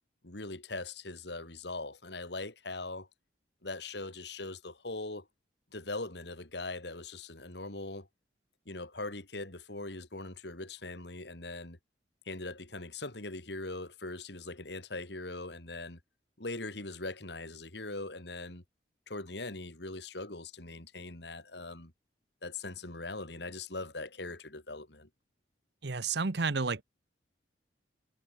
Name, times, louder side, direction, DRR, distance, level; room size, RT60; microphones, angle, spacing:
voice 1, 0.2-3.1 3.6-5.3 5.7-8.1 8.7-11.8 12.2-16.0 16.4-18.6 19.1-21.9 22.4-25.1, left 2 dB, 70° left, 3.2 m, -41 dB
voice 2, 25.8-26.8, right 4 dB, 65° right, 1.0 m, -31 dB
head